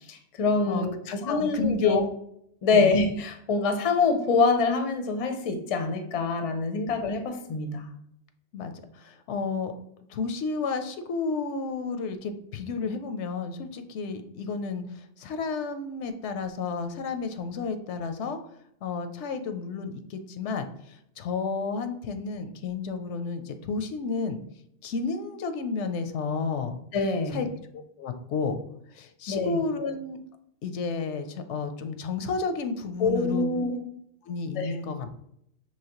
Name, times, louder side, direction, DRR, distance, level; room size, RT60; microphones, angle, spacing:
voice 1, 0.1-2.0 2.6-7.9 26.9-27.5 29.3-29.6 33.0-33.8 34.6-34.7, left 4 dB, 45° left, 6 dB, 0.5 m, -25 dB
voice 2, 0.7-2.1 2.7-2.9 8.5-9.7 10.1-14.8 15.2-18.4 18.8-24.4 24.8-26.8 27.3-27.5 28.0-28.6 28.9-30.2 30.6-33.7 34.2-35.2, left 4 dB, 85° left, 8 dB, 0.9 m, -31 dB
5.6 x 2.9 x 2.9 m, 0.73 s
omnidirectional pair, 1.2 m